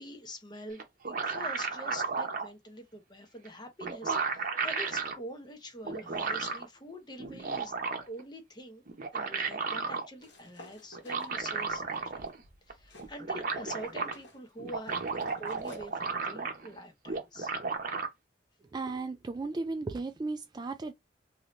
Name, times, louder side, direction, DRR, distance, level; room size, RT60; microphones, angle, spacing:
voice 1, 0.0-8.8 9.1-11.8 12.1-12.3 12.7-17.5, equal, 25° left, 0.8 m, -45 dB
sound 1, 0.8-2.5 3.5-3.6 3.8-5.2 5.8-6.7 7.2-8.2 8.9-10.1 10.9-12.4 12.7-12.8 13.0-14.1 14.6-16.7 17.1-18.1, right 4 dB, 50° right, 0.8 m, -34 dB
sound 2, 10.2-13.2 13.5-15.9, left 1 dB, 85° left, 1.2 m, -54 dB
voice 2, 18.7-20.9, right 3 dB, 25° right, 0.3 m, -35 dB
2.7 x 2.7 x 3.1 m
head